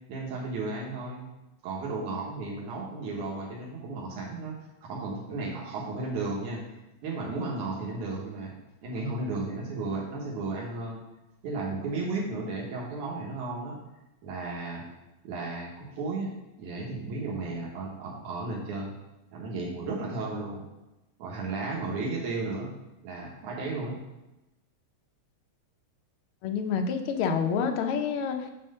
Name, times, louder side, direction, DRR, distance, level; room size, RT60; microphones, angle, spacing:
voice 1, 0.1-1.2 1.6-4.6 4.8-6.6 7.0-8.5 8.8-11.0 11.4-13.8 14.2-14.8 15.2-16.3 16.6-18.9 19.3-20.7 21.2-22.7 23.0-24.0, right 3 dB, 90° right, -3 dB, 2.6 m, -34 dB
voice 2, 26.4-28.5, left 6 dB, 70° left, 4 dB, 1.3 m, -28 dB
6.0 x 4.4 x 6.5 m, 0.96 s
omnidirectional pair, 3.3 m